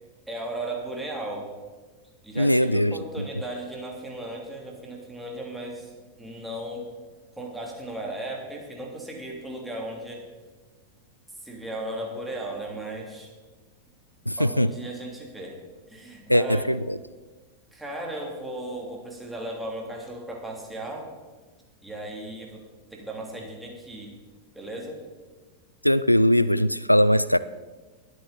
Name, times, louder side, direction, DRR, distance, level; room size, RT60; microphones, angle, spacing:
voice 1, 0.3-1.5 2.2-6.9 7.4-10.2 11.4-13.3 14.4-15.6 15.9-16.7 17.7-21.1 21.8-22.6 22.9-24.1 24.5-25.0, right 1 dB, 5° right, -1 dB, 3.1 m, -36 dB
voice 2, 2.4-2.9 14.3-14.7 16.3-17.0 25.8-27.4, equal, 90° left, 17 dB, 0.3 m, -20 dB
21.0 x 8.0 x 4.2 m, 1.3 s
figure-of-eight pair, 90°, 0 cm